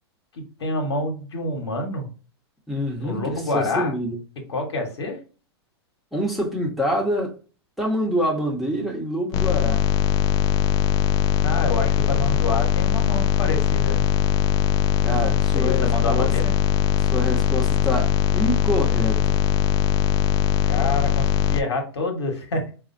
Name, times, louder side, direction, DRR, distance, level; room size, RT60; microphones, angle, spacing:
voice 1, 0.3-2.1 3.0-3.9 4.5-5.2 11.4-14.0 15.5-16.5 20.6-22.7, left 2 dB, 80° left, 1.2 m, -27 dB
voice 2, 2.7-4.2 6.1-7.3 7.8-9.8 15.0-16.3 17.1-19.4, equal, ahead, 1.1 m, -26 dB
sound 1, 9.3-21.6, left 9 dB, 35° left, 0.4 m, -20 dB
4.8 x 2.4 x 2.6 m
hypercardioid pair, 115°, 14 cm